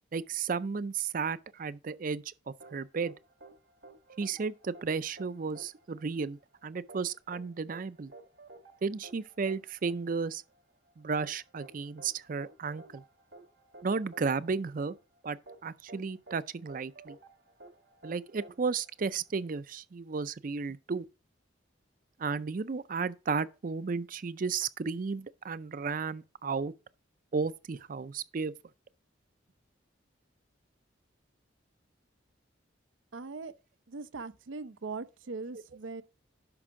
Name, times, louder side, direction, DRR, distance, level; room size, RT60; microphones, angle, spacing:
voice 1, 0.1-2.3 2.7-3.1 4.2-8.1 8.8-10.4 11.0-13.0 13.8-15.0 15.2-17.2 18.0-21.0 22.2-26.7 27.3-28.5, right 5 dB, 45° right, 0.4 m, -33 dB
sound 1, 2.6-19.5, right 2 dB, 65° right, 1.2 m, -54 dB
voice 2, 33.1-33.5 33.9-36.0, right 4 dB, 85° right, 0.6 m, -40 dB
10.5 x 6.0 x 3.7 m
head